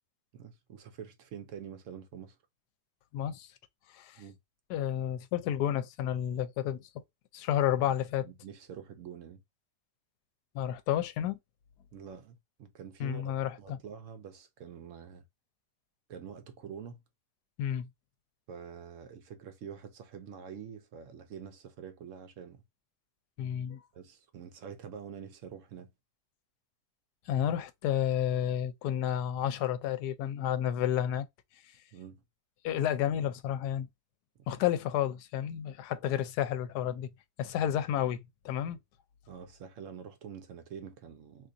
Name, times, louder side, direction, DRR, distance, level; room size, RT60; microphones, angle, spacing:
voice 1, 0.3-2.4 4.2-4.4 8.2-9.4 11.9-13.3 13.6-15.2 16.1-17.0 18.5-22.6 23.9-25.9 31.9-32.2 34.4-34.5 39.3-41.5, right 7 dB, 65° right, 0.8 m, -46 dB
voice 2, 3.1-3.5 3.9-4.2 4.7-7.0 7.3-8.3 10.5-11.4 13.0-13.8 17.6-17.9 23.4-23.8 27.3-31.3 32.6-33.9 34.5-37.1 37.4-38.8, left 10 dB, 80° left, 1.1 m, -31 dB
2.8 x 2.4 x 3.8 m
omnidirectional pair, 1.7 m